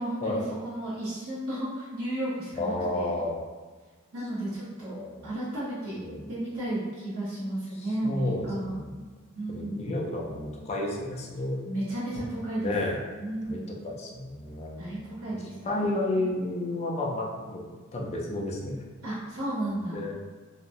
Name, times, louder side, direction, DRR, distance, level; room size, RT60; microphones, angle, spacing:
voice 1, 0.0-3.2 4.1-4.9 5.2-6.0 6.3-8.8 9.4-9.9 11.6-12.8 13.2-13.7 14.8-15.8 16.1-16.3 19.0-20.0, right 1 dB, 70° right, -11 dB, 0.9 m, -33 dB
voice 2, 2.6-3.4 4.9-5.3 6.0-6.3 8.0-9.1 9.5-11.6 12.6-13.0 13.4-15.0 15.6-18.8 19.9-20.1, left 2 dB, 30° left, -1 dB, 0.4 m, -31 dB
2.8 x 2.2 x 2.6 m, 1.4 s
head